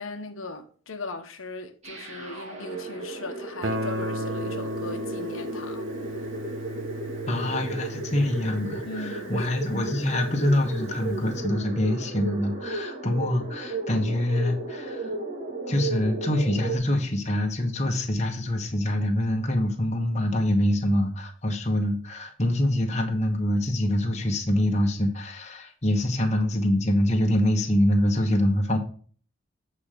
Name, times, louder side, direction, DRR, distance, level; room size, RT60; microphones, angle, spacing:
voice 1, 0.0-5.9 6.2-6.3 8.8-9.5 9.8-9.9, left 2 dB, 90° left, 1.1 m, -38 dB
sound 1, 1.8-16.8, right 3 dB, 35° right, 1.7 m, -35 dB
Guitar, 3.6-10.3, equal, 70° right, 0.8 m, -35 dB
voice 2, 7.3-15.1 15.7-28.8, left 1 dB, 35° left, 1.3 m, -25 dB
8.4 x 4.4 x 5.0 m
head